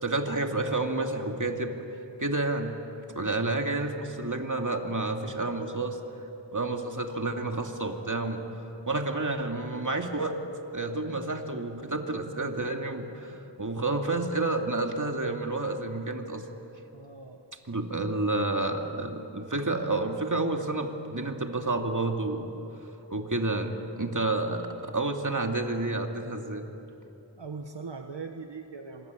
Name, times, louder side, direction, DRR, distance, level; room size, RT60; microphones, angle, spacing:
voice 1, 0.0-1.7 2.2-2.7 3.2-6.0 6.5-8.4 8.9-10.4 10.7-16.4 17.7-22.5 23.1-26.7, right 2 dB, 45° right, 3 dB, 2.5 m, -30 dB
voice 2, 16.9-17.4 27.4-29.1, right 4 dB, 70° right, 4 dB, 1.4 m, -40 dB
26.5 x 23.0 x 9.6 m, 3.0 s
wide cardioid pair, 45°, 44 cm